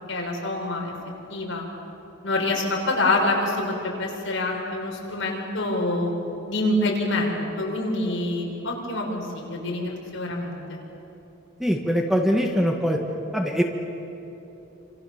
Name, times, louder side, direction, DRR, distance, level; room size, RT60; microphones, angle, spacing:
voice 1, 0.1-0.9 1.3-1.6 2.2-6.1 6.5-10.8, left 2 dB, 65° left, -1 dB, 6.1 m, -26 dB
voice 2, 11.6-13.0 13.3-13.6, equal, ahead, 1 dB, 1.7 m, -22 dB
29.5 x 27.0 x 7.3 m, 3.0 s
head